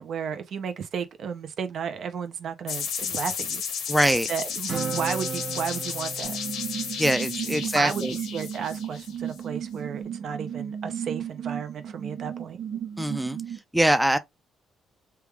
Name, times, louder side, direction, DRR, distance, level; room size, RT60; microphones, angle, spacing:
voice 1, 0.0-3.6 4.3-6.4 7.5-12.6, right 7 dB, 65° right, 0.6 m, -33 dB
sound 1, 2.7-9.4, left 7 dB, 75° left, 0.9 m, -33 dB
voice 2, 3.9-4.3 7.0-8.1 13.0-13.4 13.7-14.2, right 1 dB, 5° right, 0.4 m, -23 dB
Acoustic guitar, 4.7-8.3, right 6 dB, 50° right, 1.1 m, -36 dB
sound 2, 6.2-13.6, right 8 dB, 80° right, 1.1 m, -35 dB
3.3 x 2.3 x 3.2 m
cardioid pair, 90°, 0 cm